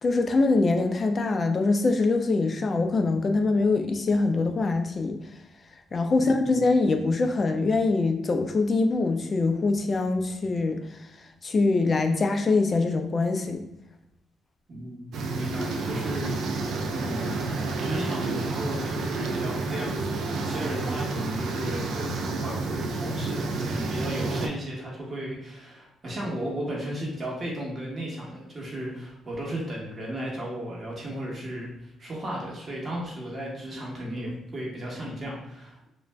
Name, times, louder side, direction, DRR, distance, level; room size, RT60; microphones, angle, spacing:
voice 1, 0.0-5.2 5.9-11.0 11.4-13.6, left 3 dB, 40° left, 6 dB, 0.3 m, -24 dB
voice 2, 14.7-15.0 15.3-16.4 16.9-17.4 17.8-35.9, right 1 dB, 35° right, -3 dB, 1.0 m, -34 dB
sound 1, 15.1-24.5, right 3 dB, 75° right, 0.3 m, -30 dB
2.5 x 2.1 x 3.2 m, 0.90 s
cardioid pair, 90°, 0 cm